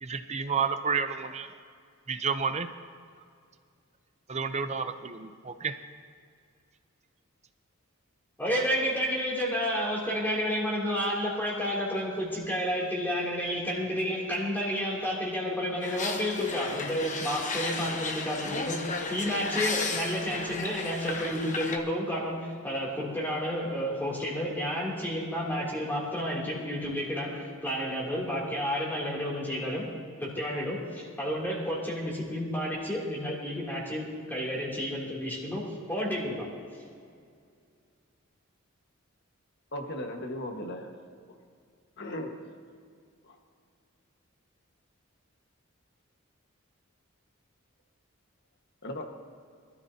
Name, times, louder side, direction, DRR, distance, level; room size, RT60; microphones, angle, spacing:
voice 1, 0.0-1.5 2.1-2.7 4.3-5.7, right 5 dB, 30° right, 9 dB, 0.7 m, -30 dB
voice 2, 8.4-36.8, equal, 10° left, -5 dB, 2.9 m, -31 dB
sound 1, 15.8-21.8, left 4 dB, 35° left, 1.1 m, -34 dB
voice 3, 39.7-40.9 42.0-42.3 48.8-49.1, left 1 dB, 55° left, 3 dB, 1.6 m, -36 dB
24.5 x 13.5 x 2.8 m, 2.2 s
head